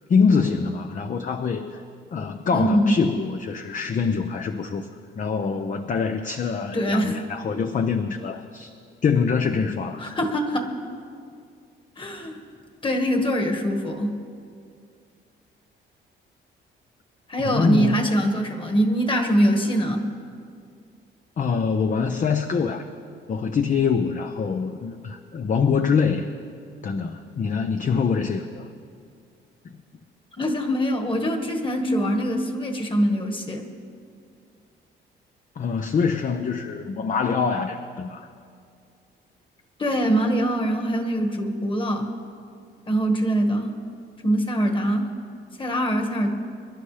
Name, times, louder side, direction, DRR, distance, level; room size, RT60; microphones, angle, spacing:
voice 1, 0.1-1.8 2.1-4.9 5.2-8.7 9.0-10.1 17.4-18.1 21.4-22.9 23.3-26.3 26.8-28.7 35.6-38.3, left 5 dB, 40° left, 7 dB, 0.7 m, -24 dB
voice 2, 2.5-3.0 6.7-7.2 10.0-10.7 12.0-12.4 12.8-14.2 17.3-20.1 30.4-33.7 39.8-42.1 42.9-43.8 44.2-45.1 45.6-46.3, equal, 25° left, 3 dB, 1.7 m, -23 dB
24.0 x 11.5 x 3.4 m, 2.3 s
cardioid pair, 90°, 20 cm